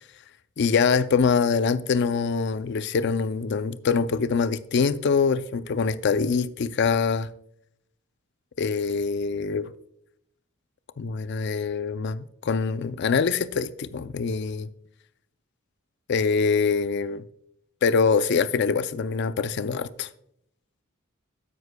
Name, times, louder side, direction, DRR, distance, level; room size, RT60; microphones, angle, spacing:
voice 1, 0.6-7.3 8.6-9.7 11.0-14.7 16.1-17.2 17.8-20.1, left 5 dB, 55° left, 0.4 m, -24 dB
12.5 x 9.7 x 2.2 m
head